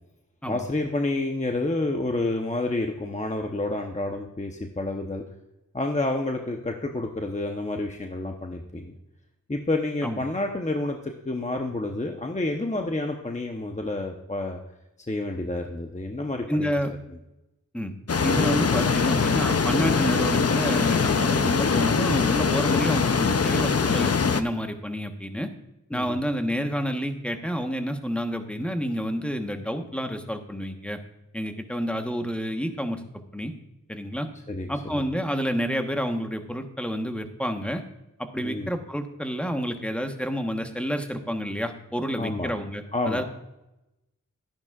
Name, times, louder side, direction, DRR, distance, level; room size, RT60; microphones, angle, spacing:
voice 1, 0.5-5.2 5.7-9.0 9.5-14.6 15.1-16.7 25.9-26.2 34.5-34.7 34.9-35.0 38.4-38.7 42.2-42.5 42.9-43.2, left 2 dB, 20° left, 2 dB, 0.9 m, -29 dB
voice 2, 16.5-16.9 17.7-17.9 18.2-25.5 25.9-31.0 31.3-33.0 33.3-33.5 33.9-34.3 34.7-37.8 38.2-43.2, equal, 5° left, 5 dB, 1.2 m, -29 dB
sound 1, 18.1-24.4, left 5 dB, 50° left, 0.7 m, -22 dB
12.0 x 10.5 x 2.4 m, 0.93 s
wide cardioid pair, 50°, 33 cm